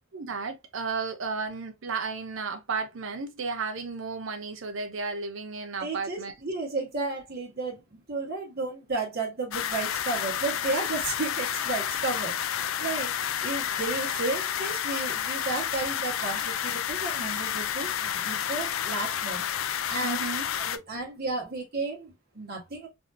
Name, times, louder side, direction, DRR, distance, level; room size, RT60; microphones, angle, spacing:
voice 1, 0.1-6.3 20.0-20.5, right 4 dB, 65° right, 0.6 m, -33 dB
voice 2, 5.8-12.3 12.8-13.1 13.4-19.4 19.9-20.2 20.6-22.9, right 3 dB, 50° right, 1.4 m, -33 dB
sound 1, 9.5-20.8, left 9 dB, 75° left, 0.4 m, -30 dB
3.4 x 2.7 x 2.5 m
head